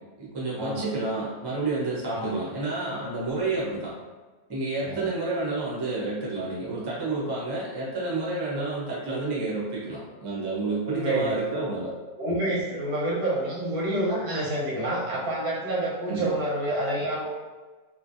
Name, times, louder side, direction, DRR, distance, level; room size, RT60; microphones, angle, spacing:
voice 1, 0.2-3.9 4.5-11.9 16.1-16.3, right 2 dB, 25° right, -6 dB, 0.5 m, -30 dB
voice 2, 10.8-11.4 12.2-17.4, right 1 dB, 85° right, -6 dB, 1.4 m, -28 dB
3.1 x 2.2 x 2.6 m, 1.3 s
omnidirectional pair, 1.6 m